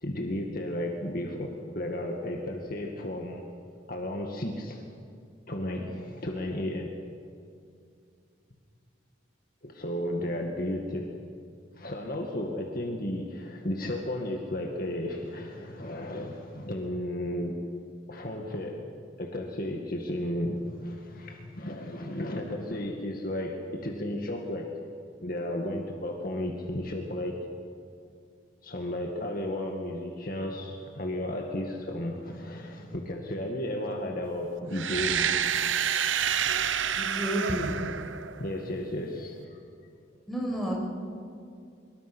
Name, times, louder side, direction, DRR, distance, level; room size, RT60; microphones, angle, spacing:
voice 1, 0.0-3.5 3.9-4.8 5.5-6.9 9.6-11.1 11.8-17.6 18.1-18.9 19.2-24.7 25.2-27.4 28.6-35.5 38.4-39.6, left 1 dB, 50° left, 1 dB, 2.1 m, -33 dB
sound 1, 34.7-38.7, right 8 dB, 80° right, 0.9 m, -28 dB
voice 2, 36.9-37.7 40.3-40.9, equal, ahead, -3 dB, 5.9 m, -30 dB
25.0 x 23.5 x 6.3 m, 2.4 s
head